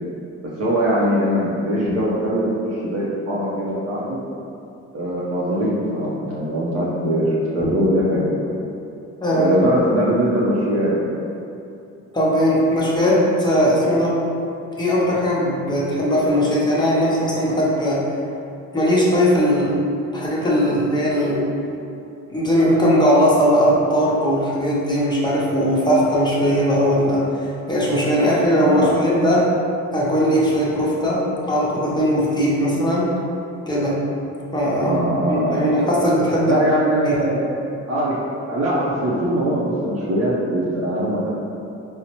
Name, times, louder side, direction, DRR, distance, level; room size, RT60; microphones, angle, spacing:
voice 1, 0.6-4.0 4.9-8.4 9.3-11.1 28.6-29.0 34.8-35.7 36.5-37.4 37.9-38.1 38.5-41.3, equal, 55° right, -7 dB, 0.6 m, -21 dB
voice 2, 9.2-9.6 12.1-14.2 14.8-18.0 18.7-19.8 20.1-21.5 22.3-29.5 29.9-33.1 33.7-34.0 34.5-35.0 35.3-36.7 37.0-37.3, equal, 15° left, -6 dB, 0.8 m, -19 dB
4.0 x 2.1 x 2.8 m, 2.7 s
cardioid pair, 90°, 30 cm